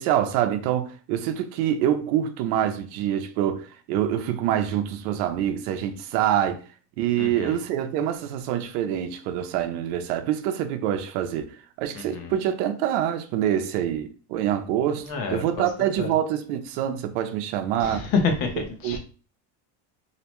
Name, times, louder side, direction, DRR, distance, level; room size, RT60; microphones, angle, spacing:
voice 1, 0.0-6.6 7.0-18.1 18.8-19.0, right 10 dB, 85° right, 0.6 m, -26 dB
voice 2, 7.2-7.6 11.9-12.3 15.1-15.7 16.0-16.1 17.8-19.0, left 4 dB, 50° left, 0.7 m, -28 dB
2.7 x 2.1 x 2.9 m
cardioid pair, 150°, 46 cm